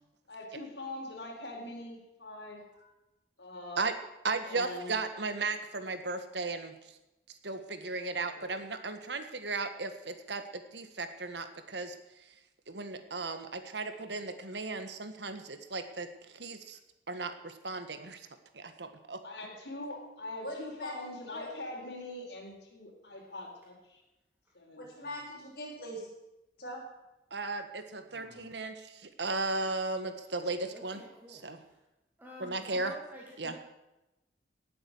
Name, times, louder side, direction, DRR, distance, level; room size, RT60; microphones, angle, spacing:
voice 1, 0.3-2.6 3.4-3.8 4.4-4.9 8.3-8.5 19.2-24.0 24.5-25.1 28.0-28.5, left 2 dB, 85° left, 0 dB, 4.3 m, -43 dB
voice 2, 4.2-7.0 7.3-12.0 12.7-16.8 17.1-18.3 18.5-19.2 27.3-31.0 31.4-31.6 32.4-32.9 33.4-33.6, right 3 dB, 80° right, 8 dB, 1.6 m, -36 dB
voice 3, 20.4-21.5 24.8-26.1 26.6-26.8, equal, 60° left, -5 dB, 6.9 m, -42 dB
voice 4, 30.7-31.8 32.2-33.6, equal, 10° right, -3 dB, 2.2 m, -50 dB
18.0 x 7.9 x 7.8 m, 0.96 s
head